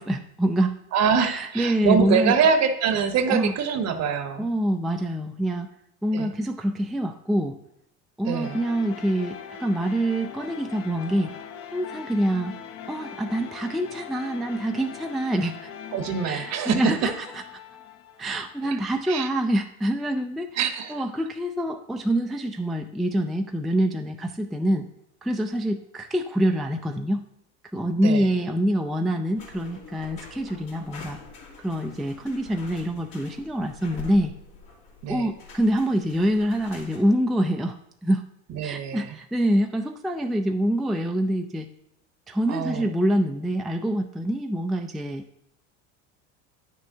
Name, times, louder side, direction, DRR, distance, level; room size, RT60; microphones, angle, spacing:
voice 1, 0.0-0.8 1.2-2.3 3.3-3.5 4.4-5.7 6.0-7.6 8.2-11.3 11.7-12.6 12.9-15.7 16.3-17.3 18.2-20.6 20.9-24.9 25.2-27.2 27.7-31.2 31.6-34.3 35.1-37.8 38.0-38.2 38.6-41.7 42.3-45.2, right 1 dB, ahead, 4 dB, 0.3 m, -25 dB
voice 2, 0.9-4.5 6.1-6.3 8.2-8.6 15.9-17.0 18.6-19.3 20.6-21.0 28.0-28.3 35.0-35.3 38.5-39.2 42.5-42.9, right 6 dB, 50° right, 9 dB, 1.0 m, -25 dB
sound 1, 8.4-19.3, left 7 dB, 40° left, 0.7 m, -41 dB
sound 2, 29.3-37.0, left 3 dB, 75° left, 2.5 m, -45 dB
9.2 x 6.3 x 2.7 m, 0.78 s
supercardioid pair, 90°, 34 cm